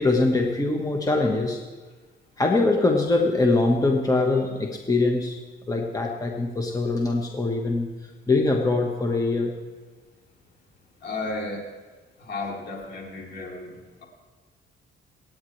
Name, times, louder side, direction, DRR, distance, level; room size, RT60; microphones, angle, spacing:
voice 1, 0.0-1.6 2.4-5.4 5.7-7.9 8.3-9.5, left 3 dB, 15° left, 1 dB, 1.5 m, -23 dB
voice 2, 11.0-11.7 12.2-13.7, left 2 dB, 55° left, -1 dB, 3.4 m, -33 dB
27.0 x 9.4 x 3.3 m, 1.3 s
cardioid pair, 90°, 20 cm